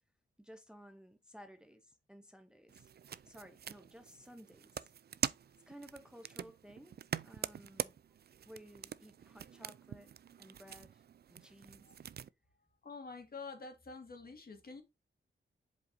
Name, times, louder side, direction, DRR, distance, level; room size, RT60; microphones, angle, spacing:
voice 1, 0.4-2.9 3.2-4.9 5.7-7.0 7.2-7.9 8.5-10.1 10.4-11.0 11.3-11.9, equal, 5° right, 0.8 m, -56 dB
sound 1, 2.7-12.3, right 8 dB, 55° right, 0.4 m, -44 dB
voice 2, 12.8-14.8, left 4 dB, 50° left, 2.0 m, -47 dB
7.8 x 4.9 x 2.7 m
wide cardioid pair, 125°, 20 cm